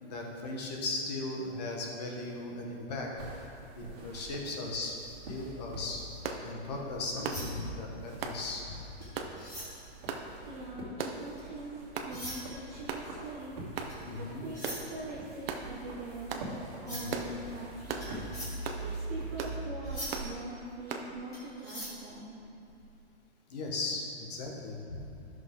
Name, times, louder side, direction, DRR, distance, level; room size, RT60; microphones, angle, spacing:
voice 1, 0.0-3.1 3.7-5.0 5.3-6.0 6.4-8.6 9.4-9.5 14.1-14.4 16.8-17.1 23.5-25.1, left 2 dB, 40° left, 0 dB, 1.2 m, -37 dB
sound 1, 3.2-20.2, right 2 dB, 35° right, 2.2 m, -44 dB
sound 2, 6.2-6.4 7.2-7.5 8.2-8.4 9.2-9.3 10.1-10.3 11.0-11.3 12.0-12.1 12.9-13.1 13.8-14.0 14.6-14.8 15.5-15.7 16.3-16.5 17.1-17.3 17.9-18.1 18.6-18.8 19.4-19.6 20.1-20.3 20.9-21.1, right 6 dB, 60° right, 0.9 m, -37 dB
sound 3, 7.2-11.6 12.0-23.0, equal, 10° left, 1.4 m, -45 dB
voice 2, 10.2-13.6 14.2-16.3 16.8-18.2 18.8-22.3, right 2 dB, 15° right, -8 dB, 0.5 m, -43 dB
11.5 x 6.3 x 3.7 m, 2.6 s
hypercardioid pair, 175°, 33 cm